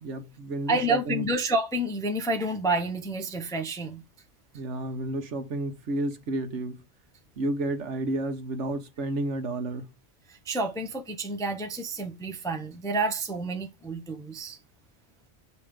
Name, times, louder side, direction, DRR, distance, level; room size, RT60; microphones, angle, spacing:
voice 1, 0.0-1.2 4.5-6.8 7.4-9.9, right 2 dB, 75° right, 1.3 m, -31 dB
voice 2, 0.7-4.0 10.3-14.6, right 2 dB, 5° left, 0.5 m, -29 dB
6.9 x 3.0 x 4.9 m
omnidirectional pair, 1.2 m